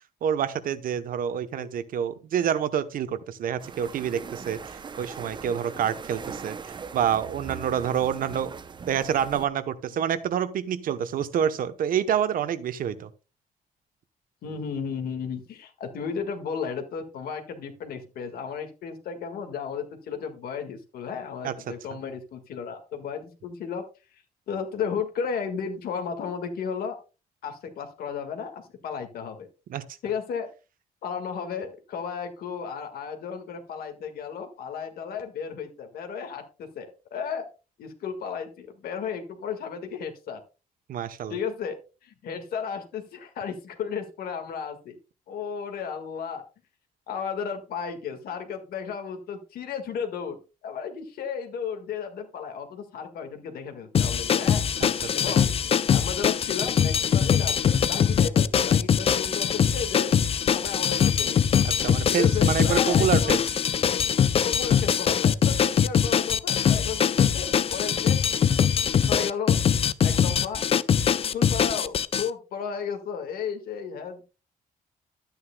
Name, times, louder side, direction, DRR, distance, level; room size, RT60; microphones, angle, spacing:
voice 1, 0.2-8.5 8.9-13.1 21.4-21.5 29.7-29.8 40.9-41.4 61.8-63.4, right 9 dB, 70° right, 12 dB, 0.9 m, -27 dB
sound 1, 3.6-9.5, right 5 dB, 30° right, 0.6 m, -40 dB
voice 2, 14.4-23.8 24.5-27.0 27.4-29.5 30.0-30.5 31.0-37.5 37.8-40.4 41.3-41.8 42.0-45.0 45.3-46.4 47.1-50.4 50.6-54.6 55.1-55.5 55.9-60.1 60.5-61.4 62.1-63.4 64.4-68.2 69.1-69.6 70.0-70.6 71.1-74.2, left 6 dB, 85° left, 5 dB, 1.8 m, -34 dB
sound 2, 53.9-72.3, left 8 dB, 40° left, 0.4 m, -22 dB
13.0 x 9.4 x 2.2 m, 0.31 s
cardioid pair, 140°, 15 cm